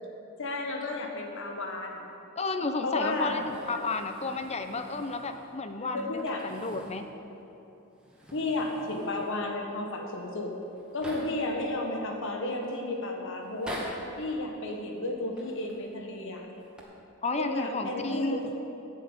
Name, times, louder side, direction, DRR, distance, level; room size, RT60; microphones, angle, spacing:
voice 1, 0.4-2.1 2.8-3.4 5.9-6.5 8.3-10.5 10.9-13.8 14.2-16.4 17.4-18.4, left 2 dB, 65° left, 1 dB, 1.4 m, -33 dB
voice 2, 2.4-7.0 17.2-18.4, left 3 dB, 30° left, 7 dB, 0.8 m, -32 dB
sound 1, 3.1-5.6 6.1-7.1 7.4-7.5 7.9-9.5 10.2-10.3 10.5-11.5 12.2-12.7 13.4-14.2 15.3-15.9 16.5-16.8, equal, 5° right, 2.0 m, -45 dB
12.5 x 6.7 x 9.0 m, 2.9 s
head